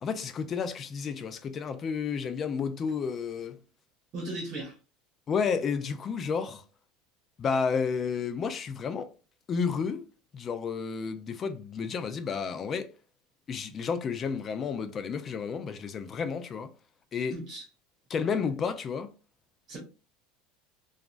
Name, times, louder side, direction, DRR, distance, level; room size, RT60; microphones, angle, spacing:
voice 1, 0.0-3.6 5.3-6.6 7.4-9.1 9.5-10.1 10.3-12.9 13.5-16.7 17.1-17.3 18.1-19.1, left 6 dB, 30° left, 0.4 m, -31 dB
voice 2, 4.1-4.7 17.3-17.6 19.7-19.8, right 1 dB, 40° right, 1.1 m, -36 dB
2.9 x 2.4 x 2.5 m
supercardioid pair, 140°, 0 cm